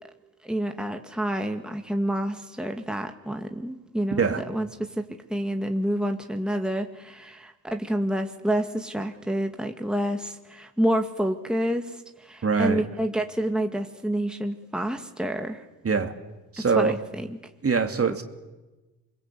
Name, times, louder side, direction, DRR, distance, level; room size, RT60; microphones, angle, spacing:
voice 1, 0.4-15.6 16.6-17.4, right 1 dB, ahead, 5 dB, 2.1 m, -28 dB
voice 2, 12.4-12.8 15.8-16.1 16.5-16.9 17.6-18.2, right 5 dB, 40° right, 6 dB, 2.7 m, -23 dB
27.5 x 21.5 x 8.5 m, 1.2 s
supercardioid pair, 60°, 37 cm